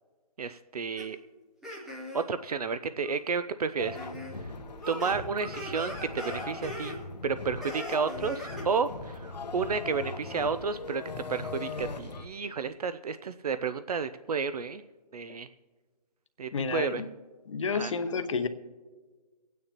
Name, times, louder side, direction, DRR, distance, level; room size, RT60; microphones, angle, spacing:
voice 1, 0.4-1.2 2.1-4.0 4.9-7.0 7.2-11.0 11.3-14.8 15.1-15.5 16.4-17.0 17.7-17.9, right 5 dB, 65° right, 12 dB, 0.5 m, -31 dB
sound 1, 1.0-1.1 1.6-2.3 3.0-3.1 3.9-4.3 4.6-7.0 7.6-8.7, left 1 dB, ahead, 0.5 m, -40 dB
sound 2, 3.8-12.3, left 3 dB, 80° left, 1.0 m, -40 dB
voice 2, 16.5-17.1 17.5-18.5, left 5 dB, 50° left, 10 dB, 0.8 m, -30 dB
24.0 x 9.3 x 2.9 m, 1.4 s
hypercardioid pair, 160°, 21 cm